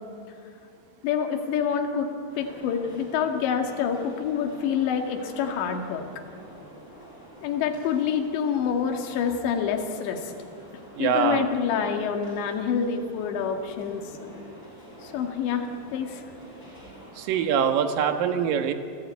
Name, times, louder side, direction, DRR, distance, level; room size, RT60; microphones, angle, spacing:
voice 1, 1.0-2.1 2.4-6.1 7.4-10.3 11.0-14.0 15.0-16.2, left 7 dB, 75° left, 4 dB, 4.1 m, -27 dB
sound 1, 2.3-17.5, equal, 30° left, 8.3 m, -47 dB
voice 2, 11.0-11.4 17.2-18.7, right 8 dB, 60° right, 7 dB, 2.6 m, -23 dB
29.0 x 18.0 x 9.5 m, 2.5 s
omnidirectional pair, 5.4 m